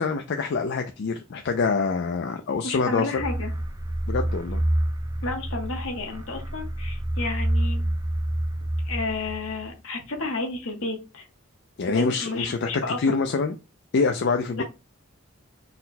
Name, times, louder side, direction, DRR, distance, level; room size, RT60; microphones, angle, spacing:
voice 1, 0.0-3.2 4.1-4.7 11.8-12.7 13.0-13.5 13.9-14.6, left 4 dB, 55° left, 0.4 m, -25 dB
voice 2, 2.6-3.5 5.2-7.9 8.8-11.3 11.9-13.0 14.6-14.7, left 3 dB, 75° left, 1.1 m, -31 dB
sound 1, 3.2-9.7, right 1 dB, 15° right, 0.3 m, -28 dB
4.1 x 2.2 x 4.0 m
head